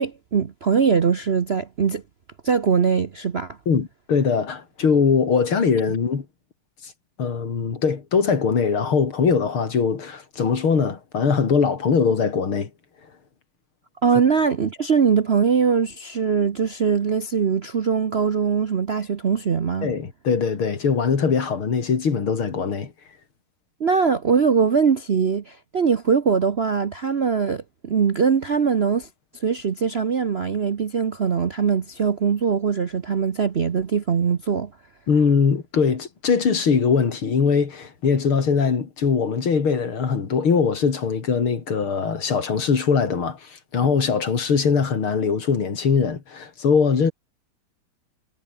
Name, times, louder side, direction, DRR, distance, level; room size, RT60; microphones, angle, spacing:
voice 1, 0.0-2.0 2.4-3.6 14.0-19.9 23.8-29.1 29.4-34.7, right 6 dB, 50° right, 0.7 m, -21 dB
voice 2, 3.7-6.3 6.8-6.9 7.2-12.7 19.8-22.9 35.1-47.1, left 5 dB, 80° left, 3.7 m, -21 dB
omnidirectional pair, 2.3 m